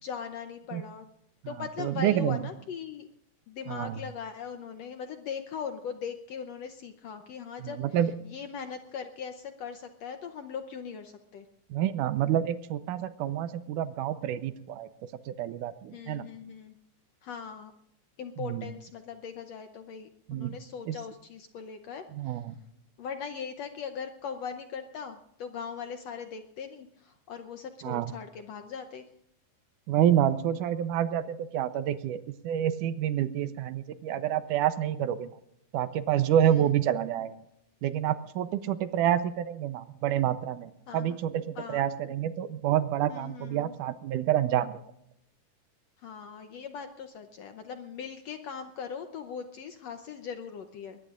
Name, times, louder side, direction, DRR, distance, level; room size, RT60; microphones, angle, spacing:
voice 1, 0.0-1.0 1.5-3.1 3.5-7.8 8.2-11.5 15.9-16.8 17.2-17.7 18.2-22.4 23.0-29.0 36.4-36.7 40.9-41.2 41.5-41.8 43.1-43.7 46.0-51.0, left 6 dB, 70° left, 7 dB, 1.6 m, -40 dB
voice 2, 1.4-2.4 3.7-4.0 7.6-8.1 11.7-14.9 15.3-16.3 18.4-18.7 20.3-20.6 20.9-21.0 22.1-22.6 27.8-28.1 29.9-35.3 35.7-37.4 37.8-44.8, right 11 dB, 80° right, 12 dB, 2.2 m, -28 dB
22.0 x 20.0 x 2.5 m, 0.76 s
omnidirectional pair, 3.8 m